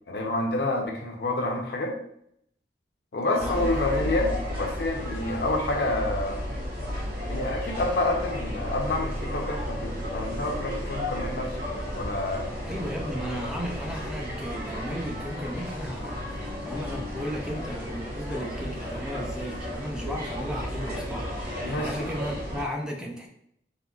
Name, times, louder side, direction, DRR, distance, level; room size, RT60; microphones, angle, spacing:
voice 1, 0.1-1.9 3.1-6.5 7.3-11.5 12.0-12.5 21.6-22.1, left 2 dB, 65° left, 2 dB, 0.5 m, -28 dB
voice 2, 3.3-3.7 12.6-23.3, equal, 5° right, 0 dB, 0.3 m, -35 dB
sound 1, 3.4-22.6, equal, 55° right, 1.1 m, -33 dB
3.6 x 2.2 x 2.3 m, 0.72 s
head